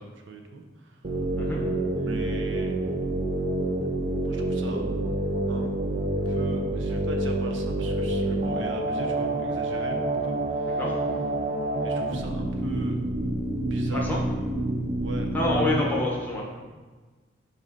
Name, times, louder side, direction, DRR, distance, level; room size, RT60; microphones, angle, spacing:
voice 1, 0.0-1.2 1.9-2.7 4.2-4.8 5.5-5.7 6.3-10.8 11.8-13.0 13.7-14.1 15.0-15.4 15.8-16.0, right 2 dB, 80° right, 3 dB, 0.7 m, -40 dB
sound 1, 1.0-15.8, right 1 dB, 40° right, 0.5 m, -27 dB
voice 2, 15.3-16.4, left 1 dB, 10° left, -3 dB, 1.0 m, -27 dB
7.2 x 2.7 x 5.2 m, 1.3 s
head